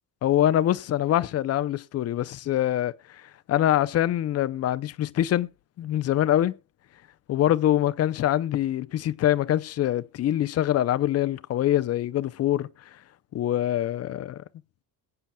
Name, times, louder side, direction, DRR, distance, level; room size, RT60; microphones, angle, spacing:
voice 1, 0.2-2.9 3.5-5.5 5.8-6.5 7.3-12.7 13.3-14.4, left 12 dB, 40° left, 0.6 m, -24 dB
21.0 x 8.9 x 2.3 m
cardioid pair, 150°, 40 cm